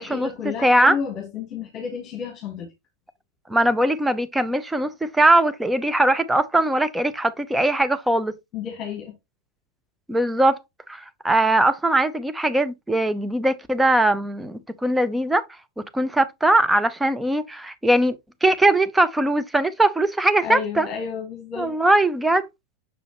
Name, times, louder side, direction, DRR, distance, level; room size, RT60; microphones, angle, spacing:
voice 1, 0.0-2.7 8.5-9.2 20.4-21.8, left 7 dB, 30° left, 1.7 m, -31 dB
voice 2, 0.6-1.0 3.5-8.3 10.1-10.6 10.9-15.4 15.9-18.2 18.4-20.9 21.6-22.5, right 1 dB, 5° right, 0.6 m, -20 dB
6.6 x 5.0 x 2.9 m
figure-of-eight pair, 90°, 0 cm